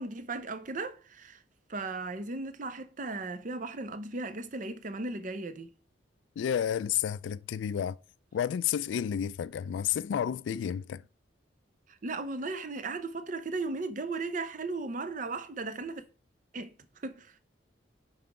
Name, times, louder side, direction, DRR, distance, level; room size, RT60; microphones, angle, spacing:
voice 1, 0.0-1.4 1.7-5.7 11.9-16.0 16.5-17.4, right 3 dB, 45° right, 0.7 m, -36 dB
voice 2, 6.4-8.0 8.3-11.0, left 9 dB, 85° left, 0.3 m, -31 dB
5.7 x 4.8 x 4.9 m
head